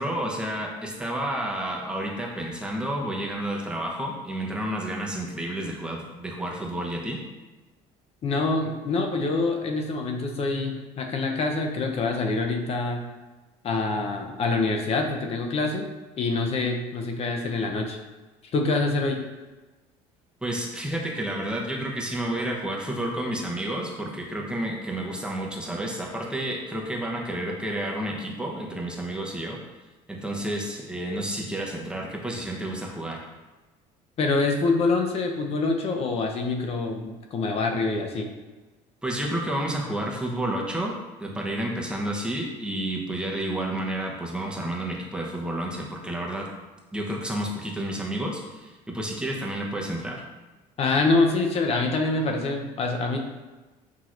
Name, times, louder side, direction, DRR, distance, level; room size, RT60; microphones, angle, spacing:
voice 1, 0.0-7.2 20.4-29.6 30.1-33.2 39.0-40.9 41.2-46.5 46.9-50.2, right 1 dB, 5° right, -2 dB, 0.8 m, -30 dB
voice 2, 8.2-13.0 13.6-15.9 16.2-18.0 18.5-19.2 34.2-38.3 50.8-53.2, left 3 dB, 45° left, 3 dB, 0.7 m, -25 dB
6.1 x 2.8 x 2.5 m, 1.2 s
supercardioid pair, 100°, 15 cm